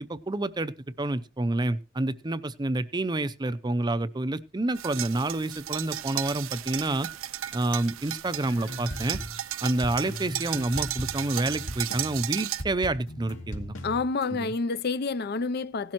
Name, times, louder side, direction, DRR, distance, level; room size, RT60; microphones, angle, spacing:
voice 1, 0.1-7.1 7.5-9.2 9.6-13.8 14.3-14.5, right 2 dB, 20° right, 0.5 m, -28 dB
sound 1, 4.8-12.6, right 12 dB, 70° right, 0.6 m, -35 dB
sound 2, 8.5-14.3, equal, 70° left, 2.4 m, -38 dB
voice 2, 13.8-15.9, left 4 dB, 50° left, 0.5 m, -28 dB
17.0 x 12.0 x 3.0 m
head